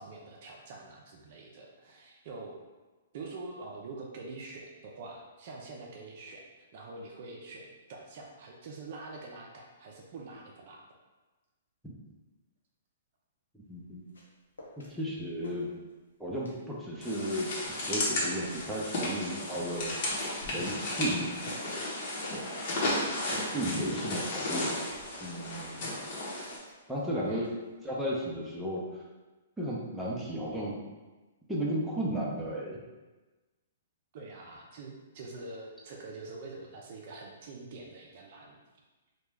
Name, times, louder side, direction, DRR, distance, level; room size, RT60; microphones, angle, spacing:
voice 1, 0.0-2.6 3.1-10.8 23.3-23.5 27.2-27.4 34.1-38.6, right 3 dB, 50° right, -1 dB, 0.5 m, -45 dB
sound 1, 13.7-15.0 15.2-16.1 16.4-22.0 22.2-25.0 25.3-27.8 28.1-28.3, left 2 dB, 85° left, 0.7 m, -52 dB
voice 2, 13.7-14.0 14.8-15.7 16.2-17.5 17.9-20.0 20.5-21.3 22.3-22.4 23.3-24.8 25.2-26.0 26.9-27.5 27.8-28.8 29.6-30.8 31.5-32.8, equal, 5° right, -6 dB, 0.7 m, -34 dB
sound 2, 17.0-26.6, left 1 dB, 45° left, 0.9 m, -34 dB
2.9 x 2.3 x 3.4 m, 1.2 s
hypercardioid pair, 130°, 0 cm